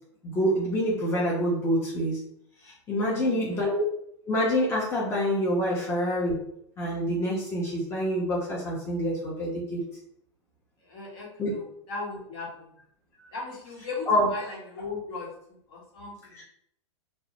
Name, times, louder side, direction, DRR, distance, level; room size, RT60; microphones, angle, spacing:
voice 1, 0.2-2.2 2.7-3.8 4.2-6.3 6.8-9.8 11.4-11.5 14.1-14.3, equal, 15° left, -5 dB, 0.6 m, -26 dB
voice 2, 3.1-3.7 10.8-12.8 13.3-16.4, left 3 dB, 55° left, -4 dB, 1.1 m, -38 dB
2.2 x 2.1 x 2.8 m, 0.69 s
hypercardioid pair, 110°, 16 cm